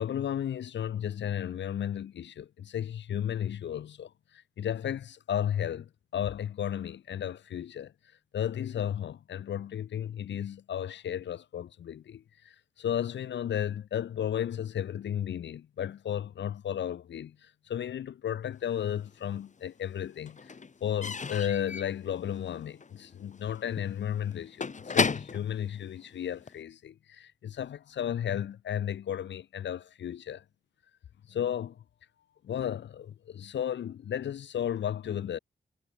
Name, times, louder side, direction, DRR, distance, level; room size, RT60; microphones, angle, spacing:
voice 1, 0.0-7.9 8.3-20.5 20.8-30.4 31.3-31.8 32.4-35.4, left 9 dB, 75° left, 0.8 m, -34 dB
Slam / Squeak / Wood, 18.8-19.6 19.8-26.6, left 5 dB, 40° left, 1.3 m, -35 dB
cardioid pair, 55°, 19 cm